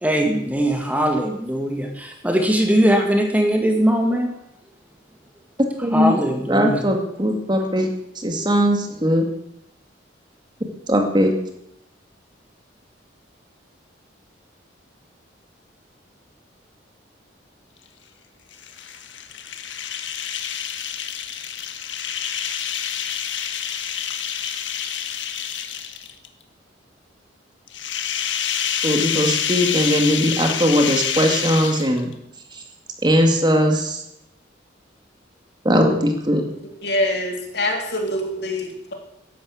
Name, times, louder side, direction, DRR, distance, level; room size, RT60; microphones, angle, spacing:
voice 1, 0.0-4.3 5.9-6.8 7.5-7.6, right 1 dB, 10° right, 3 dB, 2.0 m, -20 dB
voice 2, 5.8-6.1 6.5-9.3 10.9-11.3 28.8-32.1 33.0-34.0 35.6-36.4, equal, 25° right, 3 dB, 2.2 m, -19 dB
sound 1, 18.5-26.3 27.7-32.1, left 8 dB, 75° left, 1.5 m, -27 dB
voice 3, 36.8-38.9, left 1 dB, 60° left, 2 dB, 3.4 m, -24 dB
13.5 x 11.5 x 8.4 m, 0.79 s
head